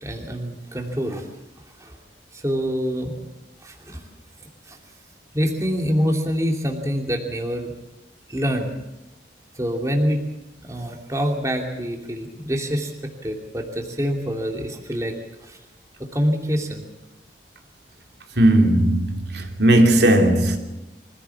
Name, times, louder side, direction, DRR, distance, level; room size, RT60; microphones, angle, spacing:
voice 1, 0.0-1.2 1.8-1.9 2.3-3.1 3.6-4.0 4.7-4.8 5.3-7.7 8.3-8.7 9.6-10.2 10.6-12.9 13.2-15.1 15.5-15.6 16.1-16.8, equal, 20° right, 2.8 m, -25 dB
voice 2, 18.4-20.6, right 1 dB, 75° right, 2.8 m, -17 dB
25.0 x 16.5 x 7.2 m
head